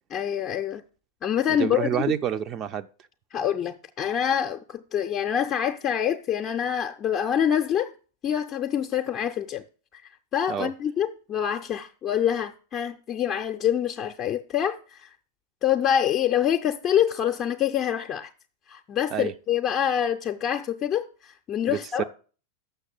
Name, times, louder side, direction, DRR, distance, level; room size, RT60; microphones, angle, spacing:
voice 1, 0.1-0.8 1.2-1.9 3.3-7.9 8.2-9.6 9.9-10.0 10.3-15.1 15.6-18.3 18.7-22.0, left 9 dB, 30° left, 0.5 m, -26 dB
voice 2, 1.6-2.9 10.5-10.7 19.1-19.3 21.7-22.0, right 9 dB, 30° right, 0.5 m, -28 dB
6.6 x 6.4 x 7.5 m
figure-of-eight pair, 90°, 0 cm